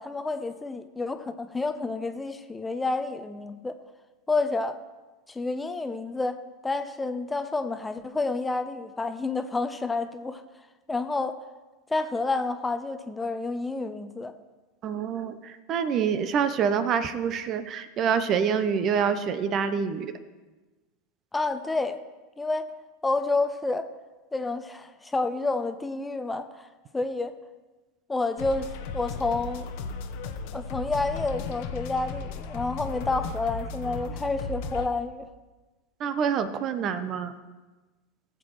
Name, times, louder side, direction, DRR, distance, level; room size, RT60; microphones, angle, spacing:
voice 1, 0.0-3.8 4.3-4.8 5.3-10.4 10.9-11.4 11.9-14.3 21.3-22.0 22.4-22.6 23.0-23.9 24.3-26.6 26.9-27.3 28.1-29.7 30.5-35.3, left 3 dB, 10° left, 9 dB, 0.7 m, -29 dB
voice 2, 14.8-20.1 36.0-37.3, right 7 dB, 40° right, 12 dB, 0.7 m, -26 dB
sound 1, 28.4-34.9, left 4 dB, 55° left, 0.9 m, -35 dB
18.0 x 7.7 x 3.1 m, 1.2 s
figure-of-eight pair, 85°, 0 cm